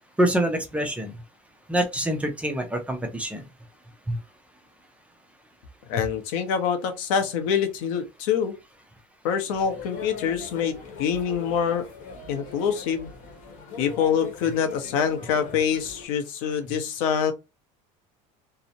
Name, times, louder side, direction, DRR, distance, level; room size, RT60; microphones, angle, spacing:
voice 1, 0.2-1.2 1.7-3.5 4.1-4.2, right 1 dB, 10° right, 0.4 m, -25 dB
voice 2, 5.9-8.5 9.2-11.8 12.3-13.1 13.8-17.3, left 7 dB, 85° left, 0.7 m, -25 dB
sound 1, 9.5-16.1, left 5 dB, 55° left, 0.9 m, -40 dB
2.7 x 2.0 x 2.6 m
cardioid pair, 145°, 16 cm